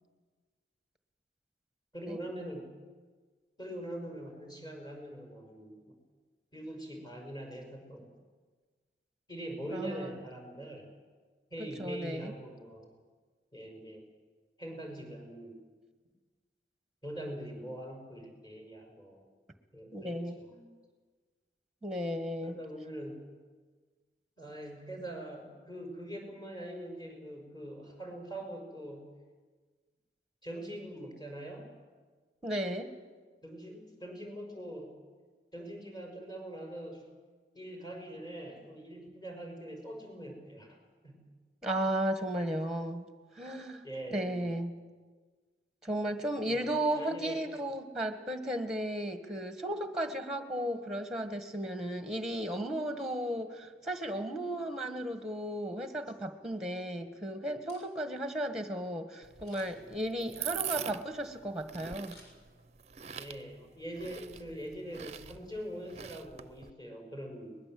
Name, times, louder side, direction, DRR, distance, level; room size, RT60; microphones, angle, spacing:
voice 1, 1.9-2.7 3.6-5.8 6.5-8.2 9.3-10.9 11.5-12.9 13.5-14.0 14.6-15.5 17.0-19.2 19.7-20.6 22.4-23.2 24.4-29.1 30.4-31.7 33.4-35.0 35.5-37.0 37.5-40.8 41.0-41.3 43.8-44.6 46.5-47.4 63.2-67.6, right 1 dB, 25° left, 2 dB, 5.7 m, -43 dB
voice 2, 9.7-10.1 11.6-12.3 19.9-20.4 21.8-22.6 32.4-32.9 41.6-43.0 43.3-43.8 44.1-44.7 45.8-62.2, right 1 dB, 5° right, 7 dB, 1.5 m, -35 dB
Camera, 57.7-58.2 59.4-59.9 62.0-62.9 63.3-63.4, left 2 dB, 75° left, 6.6 m, -59 dB
sound 1, 59.2-66.7, right 10 dB, 40° right, 0.6 m, -43 dB
22.5 x 21.0 x 7.8 m, 1.4 s
head